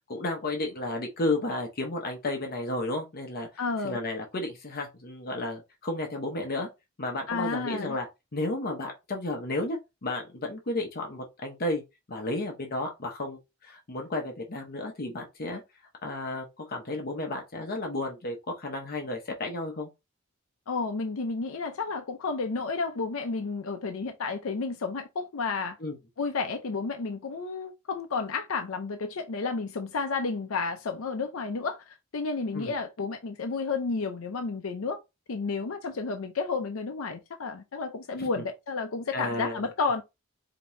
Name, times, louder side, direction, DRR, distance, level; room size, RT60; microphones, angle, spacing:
voice 1, 0.1-3.5 3.8-6.7 7.0-8.1 8.3-11.8 12.1-15.6 16.0-19.9 25.8-25.9 32.5-32.7 38.2-38.3 39.1-39.7, left 2 dB, 45° left, 0.9 m, -32 dB
voice 2, 3.6-4.0 7.3-8.0 20.7-25.8 26.2-35.0 35.3-40.0, left 4 dB, 75° left, 0.6 m, -31 dB
5.2 x 2.9 x 2.6 m
head